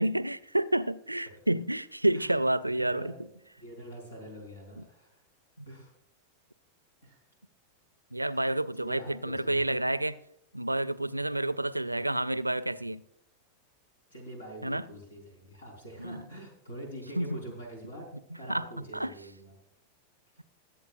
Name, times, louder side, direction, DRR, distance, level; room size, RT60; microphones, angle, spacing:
voice 1, 0.0-3.1 5.6-5.7 8.1-10.2 10.5-13.0 14.6-14.8 16.0-16.2 17.2-17.4 18.5-18.7 18.9-19.1, right 1 dB, 85° right, 0.4 m, -29 dB
voice 2, 2.7-3.1 3.6-5.2 5.6-5.9 7.0-7.2 8.3-8.4 8.8-9.6 14.1-18.1 18.4-19.6, right 1 dB, 70° left, 4.3 m, -45 dB
21.5 x 8.3 x 2.5 m
figure-of-eight pair, 90°, 0 cm